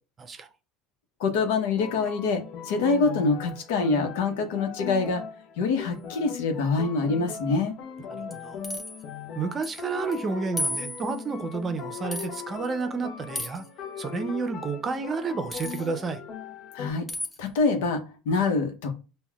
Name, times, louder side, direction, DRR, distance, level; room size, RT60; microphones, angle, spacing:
voice 1, 1.2-5.2 5.6-7.7 16.7-17.1 17.4-18.9, left 4 dB, 80° left, 0.9 m, -25 dB
sound 1, 1.5-16.9, left 6 dB, 55° left, 0.6 m, -39 dB
voice 2, 8.1-8.6 9.3-13.6 14.0-16.2, right 4 dB, 30° right, 0.6 m, -31 dB
sound 2, 8.3-9.0 9.6-9.8 10.1-10.2 10.6-11.2 12.1-12.3 13.3-13.7 15.5-15.9 17.1-17.4, left 1 dB, 10° left, 0.8 m, -33 dB
5.3 x 2.2 x 2.4 m
supercardioid pair, 100°, 0 cm